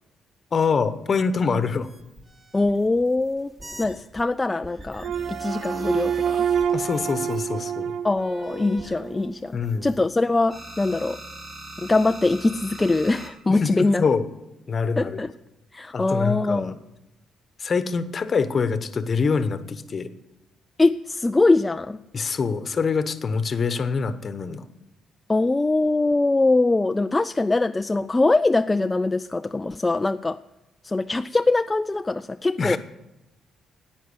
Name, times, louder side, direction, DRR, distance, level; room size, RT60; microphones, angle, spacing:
voice 1, 0.5-1.9 6.7-7.9 9.5-9.9 13.5-14.3 14.7-15.2 15.9-16.7 17.6-20.1 22.1-24.6 32.6-32.8, left 5 dB, 40° left, 12 dB, 1.0 m, -25 dB
sound 1, 1.7-4.2 4.6-7.5 8.2-10.2 10.5-13.3, right 2 dB, 30° right, 2.7 m, -42 dB
voice 2, 2.5-6.5 8.0-11.2 11.8-14.1 15.0-15.3 15.7-16.7 20.8-22.0 25.3-30.4 30.8-32.8, left 2 dB, 20° left, 9 dB, 0.3 m, -22 dB
sound 2, 5.0-9.3, right 8 dB, 70° right, 0.5 m, -27 dB
10.0 x 9.1 x 8.0 m, 0.97 s
cardioid pair, 90°, 0 cm